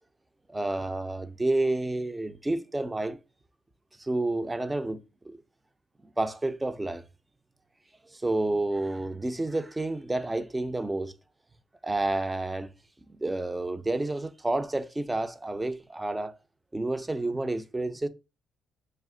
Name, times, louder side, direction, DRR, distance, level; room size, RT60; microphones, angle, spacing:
voice 1, 0.5-3.2 4.0-5.4 6.2-7.0 8.0-11.1 11.8-12.7 13.2-16.4 16.7-18.1, right 2 dB, 15° right, 0.4 m, -30 dB
3.3 x 2.8 x 3.7 m
cardioid pair, 120°, 0 cm